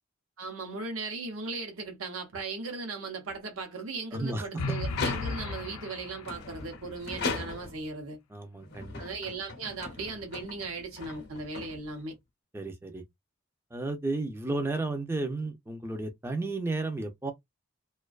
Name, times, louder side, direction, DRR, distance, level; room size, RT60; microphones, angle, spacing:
voice 1, 0.4-8.2 9.0-12.1, right 3 dB, 80° right, 0.7 m, -37 dB
voice 2, 4.1-4.6 8.3-9.0 12.5-13.0 13.7-17.3, right 2 dB, 10° right, 0.4 m, -33 dB
sound 1, 4.6-6.6, left 3 dB, 90° left, 0.4 m, -35 dB
sound 2, 4.8-5.7 6.2-7.9 8.6-12.2, left 4 dB, 50° left, 0.7 m, -38 dB
2.4 x 2.2 x 2.3 m
head